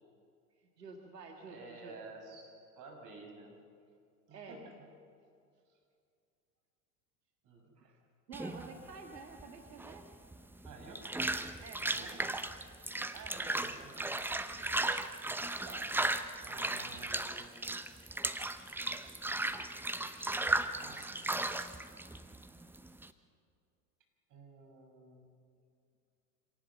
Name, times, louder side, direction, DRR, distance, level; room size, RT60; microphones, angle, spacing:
voice 1, 0.6-2.0 4.3-4.6 7.8-8.0 8.3-10.1 11.6-12.3, right 4 dB, 85° right, 3 dB, 1.9 m, -50 dB
voice 2, 1.4-3.6 4.3-4.9 5.7-5.8 7.4-7.7 10.6-11.0 11.9-12.4 13.1-14.3 15.6-15.9 16.4-17.9 20.6-21.3 24.3-25.3, right 3 dB, 40° right, 2 dB, 6.4 m, -52 dB
sound 1, 8.3-23.1, right 2 dB, 5° right, 0.8 m, -36 dB
26.5 x 18.0 x 7.0 m, 2.4 s
hypercardioid pair, 85°, 47 cm